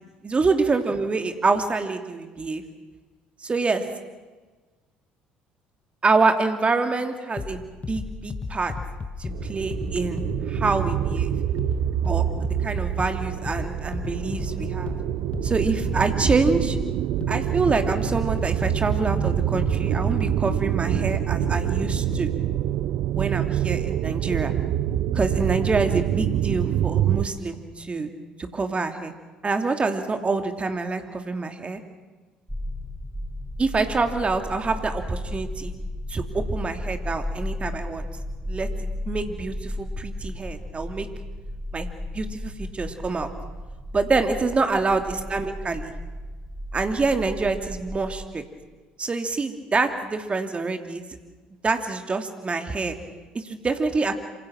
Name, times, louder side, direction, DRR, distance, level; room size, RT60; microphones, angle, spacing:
voice 1, 0.2-2.6 3.4-3.8 6.0-8.7 9.2-11.3 12.0-14.9 15.4-16.8 17.3-22.3 23.1-24.5 25.1-28.1 28.4-29.1 29.4-31.8 33.6-35.7 36.1-38.1 38.5-38.7 39.1-41.1 41.7-43.3 43.9-45.9 46.7-48.4 49.0-51.0 51.6-52.9 53.3-54.1, right 3 dB, 30° right, 7 dB, 3.0 m, -26 dB
sound 1, 7.4-22.4, left 4 dB, 30° left, 2.2 m, -34 dB
sound 2, 9.3-27.3, right 11 dB, 60° right, 1.0 m, -26 dB
sound 3, 32.5-48.3, left 1 dB, ahead, 3.9 m, -34 dB
27.0 x 25.5 x 6.2 m, 1.3 s
figure-of-eight pair, 55°, 4 cm